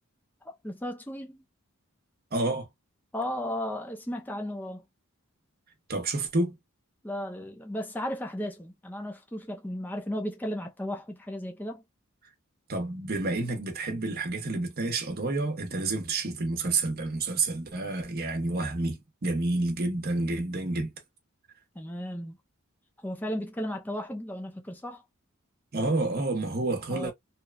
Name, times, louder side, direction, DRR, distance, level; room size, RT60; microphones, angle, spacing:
voice 1, 0.4-1.4 3.1-4.8 7.0-11.8 21.8-22.4 23.0-25.0 26.9-27.1, equal, 10° left, 0.4 m, -35 dB
voice 2, 2.3-2.7 5.9-6.6 12.7-20.9 25.7-27.1, right 2 dB, 45° right, 0.8 m, -29 dB
2.8 x 2.2 x 2.2 m
head